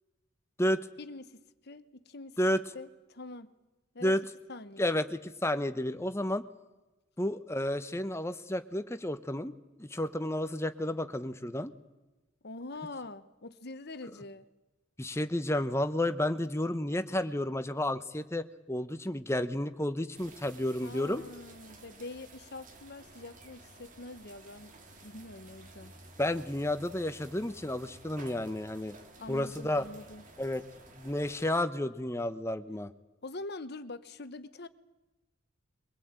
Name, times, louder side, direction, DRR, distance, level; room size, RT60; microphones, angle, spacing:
voice 1, 1.0-2.4 2.7-3.5 3.9-4.1 4.5-4.9 12.4-14.5 20.8-24.8 25.0-25.9 29.2-30.3 33.2-34.7, left 2 dB, 50° left, 12 dB, 1.1 m, -44 dB
voice 2, 4.8-6.4 7.2-9.5 9.8-11.7 15.0-21.2 26.2-29.0 29.3-29.8 30.4-30.6 31.0-32.9, left 1 dB, 15° left, 11 dB, 0.9 m, -31 dB
sound 1, 20.2-31.6, right 2 dB, 40° right, 3.0 m, -53 dB
23.5 x 20.0 x 8.9 m, 1.1 s
head